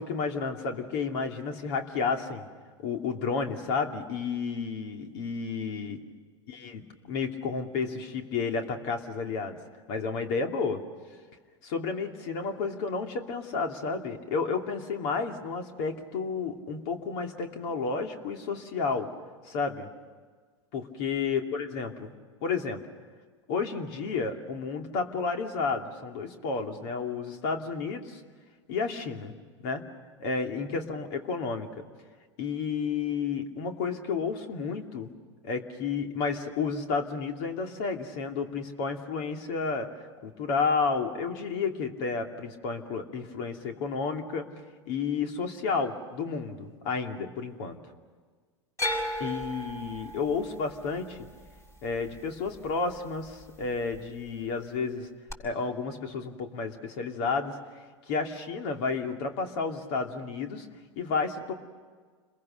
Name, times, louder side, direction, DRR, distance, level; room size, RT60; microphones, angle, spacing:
voice 1, 0.0-2.5 2.8-6.0 6.5-9.6 9.9-10.8 11.6-19.1 19.4-19.9 20.7-22.1 22.4-22.8 23.5-28.2 28.7-29.3 29.6-29.8 30.2-31.8 32.4-35.1 35.4-39.9 40.2-44.5 44.9-47.8 49.2-51.3 51.8-55.1 55.4-57.6 58.1-60.7 61.0-61.5, left 5 dB, 55° left, 4 dB, 2.8 m, -31 dB
sound 1, 48.8-53.0 53.3-54.0 55.3-55.4, left 1 dB, 20° left, 6.1 m, -35 dB
30.0 x 22.0 x 6.6 m, 1.5 s
hypercardioid pair, 95°, 15 cm